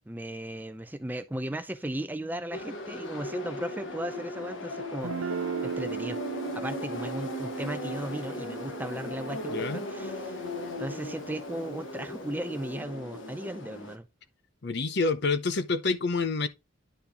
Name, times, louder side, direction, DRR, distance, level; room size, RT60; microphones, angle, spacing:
voice 1, 0.1-6.2 6.5-10.5 10.8-14.1, right 1 dB, 10° right, 0.5 m, -36 dB
sound 1, 2.5-14.0, left 2 dB, 70° left, 1.1 m, -38 dB
Guitar, 5.0-12.7, right 6 dB, 85° right, 0.4 m, -39 dB
voice 2, 9.5-9.8 14.6-16.5, left 3 dB, 55° left, 0.7 m, -27 dB
10.0 x 4.3 x 3.4 m
head